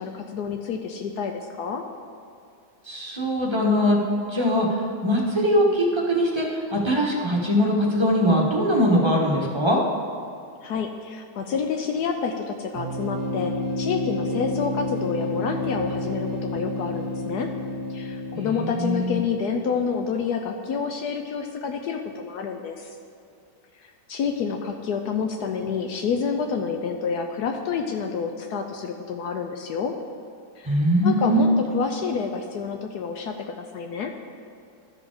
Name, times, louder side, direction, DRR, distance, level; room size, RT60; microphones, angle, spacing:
voice 1, 0.0-1.8 10.6-17.5 17.9-22.9 23.8-29.9 30.6-30.7 31.0-34.1, left 6 dB, 75° left, 4 dB, 1.1 m, -28 dB
voice 2, 2.9-4.0 4.3-9.8 18.3-19.2 30.6-31.6, equal, 20° right, -2 dB, 1.1 m, -22 dB
sound 1, 12.8-19.4, left 1 dB, 50° right, 1.2 m, -30 dB
13.0 x 4.9 x 5.0 m, 2.4 s
omnidirectional pair, 1.8 m